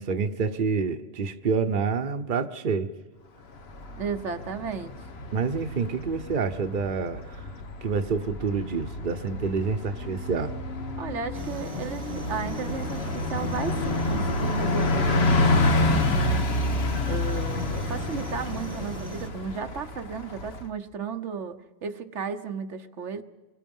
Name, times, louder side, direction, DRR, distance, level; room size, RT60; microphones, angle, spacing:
voice 1, 0.0-2.9 5.3-7.5 7.8-10.5, right 5 dB, 45° right, 8 dB, 1.1 m, -28 dB
Bus, 3.6-20.7, left 2 dB, 60° left, 1.4 m, -28 dB
voice 2, 4.0-4.9 11.0-16.4 17.1-23.2, right 6 dB, 80° right, 7 dB, 1.4 m, -34 dB
sound 1, 11.3-19.3, right 2 dB, 25° right, 1.2 m, -39 dB
29.5 x 22.5 x 5.4 m, 1.3 s
omnidirectional pair, 1.2 m